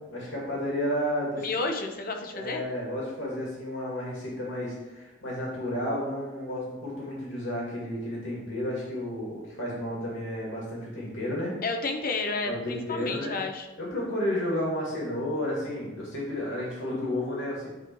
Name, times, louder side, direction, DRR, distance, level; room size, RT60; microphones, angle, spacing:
voice 1, 0.0-1.5 2.3-11.5 12.4-13.4 13.8-17.7, left 1 dB, 85° left, -5 dB, 2.2 m, -32 dB
voice 2, 1.4-2.6 11.6-13.7, left 3 dB, 50° left, 3 dB, 0.8 m, -31 dB
9.5 x 3.2 x 4.4 m, 1.1 s
head